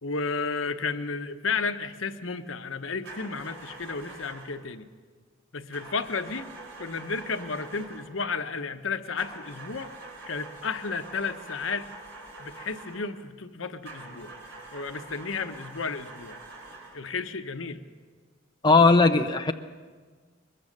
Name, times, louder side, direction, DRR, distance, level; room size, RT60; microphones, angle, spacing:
voice 1, 0.0-4.9 5.5-6.5 6.8-9.9 10.3-11.9 12.4-14.3 14.7-16.4 16.9-17.8, left 4 dB, 85° left, 9 dB, 1.0 m, -32 dB
sound 1, 3.0-4.6 5.7-8.2 9.2-13.1 13.8-17.1, right 3 dB, 70° right, 4.3 m, -45 dB
voice 2, 18.6-19.5, left 3 dB, 20° left, 6 dB, 0.7 m, -18 dB
22.0 x 21.5 x 6.6 m, 1.5 s
head